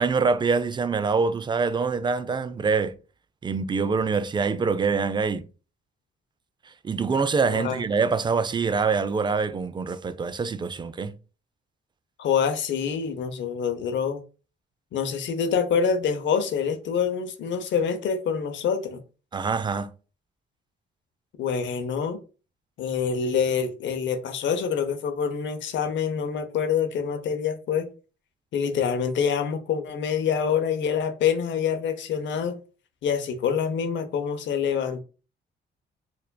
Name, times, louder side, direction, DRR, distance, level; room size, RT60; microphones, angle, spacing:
voice 1, 0.0-2.9 3.4-5.5 6.8-11.2 19.3-19.9, right 5 dB, 25° right, 0.4 m, -25 dB
voice 2, 12.2-14.2 14.9-19.0 21.4-22.2 22.8-27.9 28.5-32.6 33.0-35.0, left 7 dB, 70° left, 0.7 m, -26 dB
4.5 x 2.5 x 2.2 m
cardioid pair, 90°, 20 cm